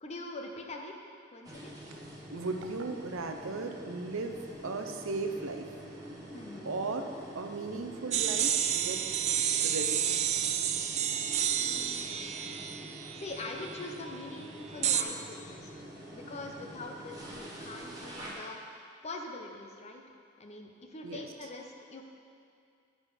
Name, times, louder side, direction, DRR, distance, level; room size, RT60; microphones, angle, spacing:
voice 1, 0.0-1.0 1.3-1.7 6.3-6.7 11.5-12.2 13.1-15.8 16.1-20.0 20.4-22.1, left 2 dB, 35° left, 2 dB, 0.7 m, -43 dB
sound 1, 1.4-18.3, equal, 20° right, 1.3 m, -46 dB
voice 2, 2.3-5.7 6.6-7.1 7.3-9.0 9.6-10.0 21.0-21.3, right 3 dB, 75° right, 5 dB, 0.7 m, -36 dB
sound 2, 8.1-13.8 14.8-15.0, right 9 dB, 35° right, 0.3 m, -30 dB
9.7 x 5.1 x 4.9 m, 2.3 s
head